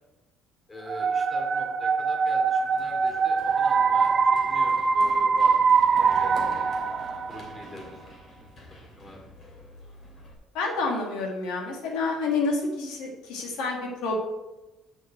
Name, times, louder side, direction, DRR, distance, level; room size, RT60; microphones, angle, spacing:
voice 1, 0.7-4.1 4.5-5.6 5.9-6.6 7.3-8.1 9.0-9.2, left 1 dB, 15° left, 2 dB, 2.5 m, -43 dB
sound 1, 0.9-7.7, right 5 dB, 35° right, 0.6 m, -23 dB
Run, 2.6-10.3, left 1 dB, 35° left, 3.0 m, -47 dB
voice 2, 10.5-14.2, left 3 dB, 80° left, 1 dB, 2.0 m, -28 dB
7.3 x 6.2 x 7.8 m, 1.0 s
cardioid pair, 115°, 0 cm